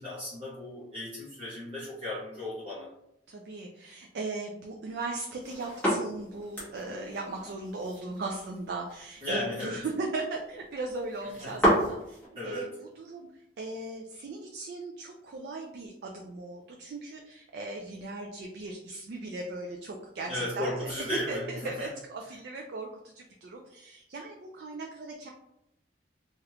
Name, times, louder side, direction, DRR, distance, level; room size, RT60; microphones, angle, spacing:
voice 1, 0.0-2.9 9.2-9.8 11.2-11.6 12.3-12.7 20.3-21.9, left 1 dB, 30° right, -9 dB, 0.8 m, -35 dB
voice 2, 3.3-12.2 12.4-12.7 13.0-13.3 13.6-20.9 21.3-25.3, right 2 dB, 60° right, 1 dB, 0.4 m, -38 dB
sound 1, 5.3-12.3, equal, 10° left, 1.2 m, -32 dB
3.3 x 2.4 x 2.8 m, 0.81 s
head